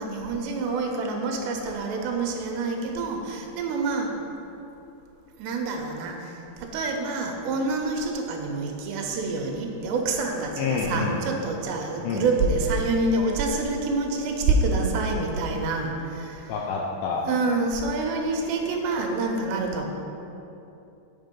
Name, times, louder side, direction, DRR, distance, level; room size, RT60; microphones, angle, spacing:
voice 1, 0.0-4.1 5.4-16.5 17.2-19.9, right 3 dB, 85° right, 2 dB, 3.0 m, -27 dB
voice 2, 10.6-11.2 12.0-12.3 16.5-17.3, left 4 dB, 80° left, -2 dB, 2.1 m, -27 dB
7.8 x 5.7 x 5.3 m, 2.9 s
omnidirectional pair, 4.9 m